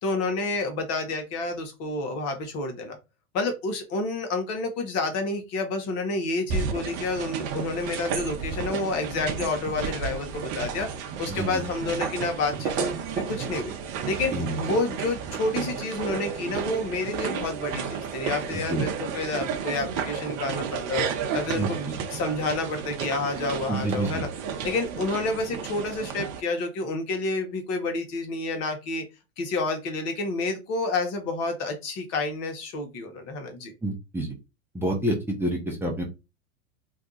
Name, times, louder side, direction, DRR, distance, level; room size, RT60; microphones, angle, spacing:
voice 1, 0.0-3.0 3.3-10.9 11.2-13.7 14.1-21.0 21.3-24.3 24.6-29.0 29.4-33.7, left 3 dB, 40° left, 5 dB, 1.0 m, -29 dB
sound 1, 6.5-26.4, right 6 dB, 40° right, 0.7 m, -32 dB
voice 2, 11.3-11.6 14.3-14.6 18.5-18.9 21.6-21.9 23.7-24.2 33.8-34.3 34.7-36.0, right 1 dB, 5° right, -1 dB, 0.8 m, -28 dB
2.6 x 2.3 x 3.9 m, 0.27 s
hypercardioid pair, 95°, 40 cm